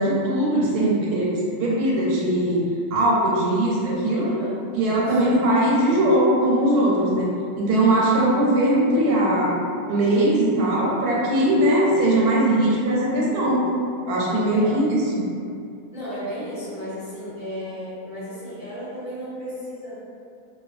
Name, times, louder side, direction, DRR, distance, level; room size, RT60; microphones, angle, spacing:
voice 1, 0.0-2.6 2.9-4.3 4.7-7.3 7.6-9.6 9.9-13.6 14.1-15.0, right 1 dB, 85° right, -5 dB, 1.2 m, -20 dB
voice 2, 4.1-4.6 5.1-5.4 8.0-8.4 14.5-14.8 15.9-19.9, equal, 50° left, -12 dB, 1.1 m, -34 dB
2.8 x 2.2 x 2.4 m, 2.4 s
omnidirectional pair, 1.6 m